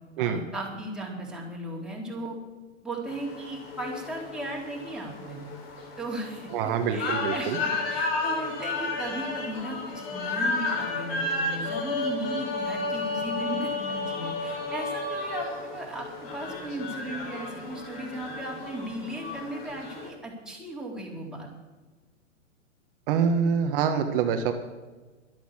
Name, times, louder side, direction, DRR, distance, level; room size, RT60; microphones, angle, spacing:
voice 1, 0.2-2.4 2.8-5.4 6.0-6.5 6.9-21.5, right 1 dB, ahead, -3 dB, 3.7 m, -36 dB
sound 1, 3.1-20.1, left 3 dB, 45° left, 4.0 m, -32 dB
voice 2, 6.5-7.6 23.1-24.5, right 7 dB, 45° right, 6 dB, 1.5 m, -25 dB
12.5 x 11.5 x 7.4 m, 1.3 s
hypercardioid pair, 120°, 39 cm